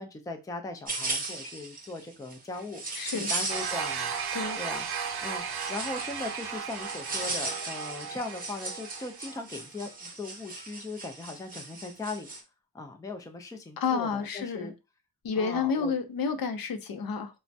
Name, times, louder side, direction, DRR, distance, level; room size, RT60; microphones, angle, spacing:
voice 1, 0.0-2.8 3.1-4.1 4.6-4.9 5.2-5.4 5.7-12.3 12.7-14.7 15.4-15.9, left 3 dB, 10° left, 0.4 m, -39 dB
sound 1, 0.9-4.2 4.5-12.4, right 3 dB, 25° right, 0.7 m, -37 dB
voice 2, 3.0-3.3 4.3-4.6 13.8-14.7 15.2-17.4, left 5 dB, 65° left, 0.6 m, -30 dB
sound 2, 3.5-9.4, right 6 dB, 85° right, 0.6 m, -35 dB
3.3 x 2.1 x 2.6 m
wide cardioid pair, 110°, 38 cm